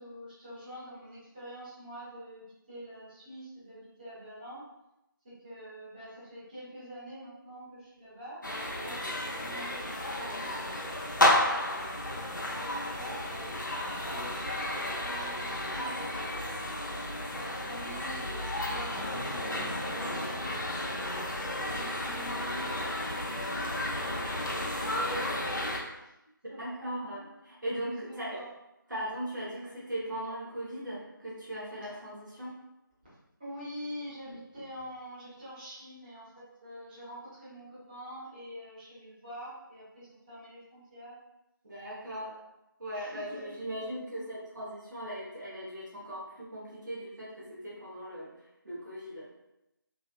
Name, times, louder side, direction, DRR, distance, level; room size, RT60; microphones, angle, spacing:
voice 1, 0.0-4.6 5.2-8.4 8.8-12.1 12.5-13.5 13.8-16.5 17.2-20.6 21.4-24.2 25.6-26.1 26.5-27.1 27.8-28.5 29.5-29.8 31.8-32.0 33.0-41.1 42.0-42.4 42.9-43.9 44.2-44.3, equal, 25° right, -12 dB, 1.4 m, -46 dB
sound 1, 8.4-25.8, left 1 dB, 60° left, 0.6 m, -32 dB
voice 2, 26.6-28.4 28.9-32.5 41.6-42.3 42.8-48.3 48.6-49.3, equal, 60° right, -7 dB, 1.1 m, -38 dB
3.0 x 2.9 x 2.3 m, 0.89 s
figure-of-eight pair, 160°, 12 cm